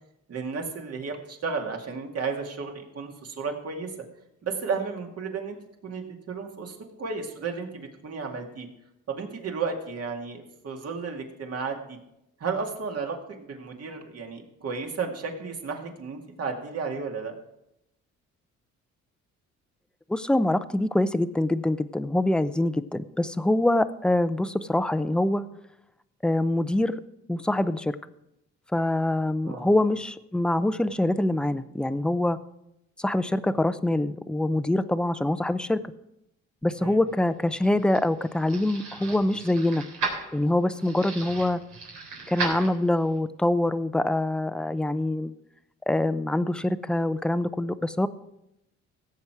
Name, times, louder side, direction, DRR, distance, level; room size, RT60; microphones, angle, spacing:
voice 1, 0.3-3.9 4.4-5.6 5.8-8.7 9.1-12.0 12.4-17.4 29.4-29.7 36.8-37.0, right 5 dB, 55° right, 3 dB, 2.2 m, -33 dB
voice 2, 20.1-25.4 26.2-27.0 27.3-28.0 28.7-32.4 33.0-35.8 36.6-39.9 40.3-41.6 42.3-45.3 45.9-48.1, left 1 dB, 5° left, 13 dB, 0.5 m, -25 dB
sound 1, 37.2-43.2, right 4 dB, 90° right, 3.7 m, -36 dB
16.5 x 7.6 x 4.7 m, 0.84 s
cardioid pair, 90°, 30 cm